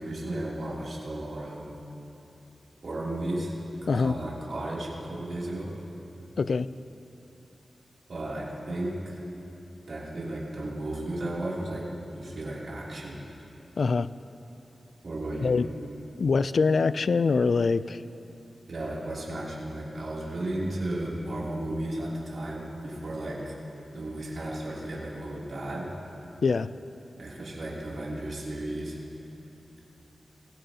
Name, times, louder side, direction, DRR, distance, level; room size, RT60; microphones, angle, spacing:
voice 1, 0.0-1.7 2.8-3.5 3.9-5.7 8.1-9.2 9.9-13.2 15.0-15.6 18.7-23.6 23.9-25.9 27.2-29.0, right 1 dB, 65° right, -6 dB, 3.0 m, -34 dB
voice 2, 6.4-6.7 13.8-14.1 15.4-15.7 16.2-18.0 26.4-26.7, left 4 dB, 70° left, 15 dB, 0.3 m, -24 dB
20.0 x 16.0 x 2.9 m, 2.9 s
wide cardioid pair, 70°, 0 cm